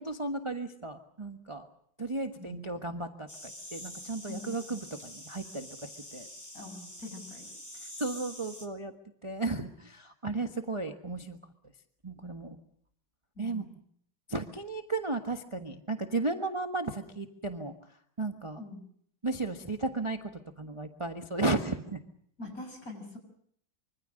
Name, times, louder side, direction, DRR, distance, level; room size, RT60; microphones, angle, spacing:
voice 1, 0.0-1.7 2.0-6.3 8.0-8.9 9.2-11.4 12.0-12.6 13.4-13.6 14.3-17.7 18.2-18.6 19.2-20.3 20.6-22.0, right 3 dB, 20° right, 5 dB, 1.2 m, -34 dB
sound 1, 3.3-8.7, left 1 dB, 10° left, 2.5 m, -46 dB
voice 2, 4.3-4.8 6.5-7.5 13.4-13.6 18.6-18.8 22.4-23.2, left 1 dB, 45° left, 5 dB, 6.6 m, -44 dB
25.5 x 24.5 x 6.4 m, 0.66 s
omnidirectional pair, 2.1 m